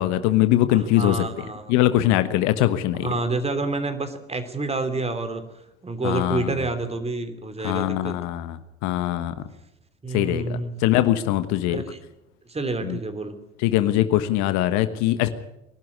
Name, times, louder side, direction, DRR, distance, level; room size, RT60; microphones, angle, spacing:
voice 1, 0.0-1.2 1.7-3.1 6.0-6.4 7.6-8.6 8.8-9.3 10.1-11.8 12.9-13.0 13.6-15.3, left 14 dB, 60° left, 12 dB, 1.3 m, -22 dB
voice 2, 0.7-1.7 3.0-8.2 10.0-10.8 11.7-12.0 12.5-13.4, right 3 dB, 20° right, 9 dB, 3.2 m, -29 dB
22.5 x 12.0 x 9.5 m, 0.87 s
hypercardioid pair, 65°, 32 cm